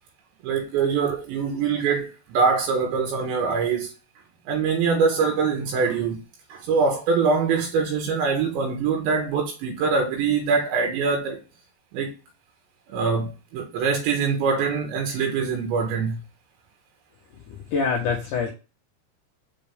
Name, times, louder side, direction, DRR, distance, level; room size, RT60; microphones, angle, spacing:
voice 1, 0.4-3.9 4.5-6.2 6.5-11.4 11.9-12.1 12.9-16.2, right 5 dB, 75° right, 3.4 m, -23 dB
voice 2, 17.7-18.5, left 5 dB, 80° left, 1.8 m, -24 dB
6.5 x 5.6 x 3.5 m
omnidirectional pair, 5.3 m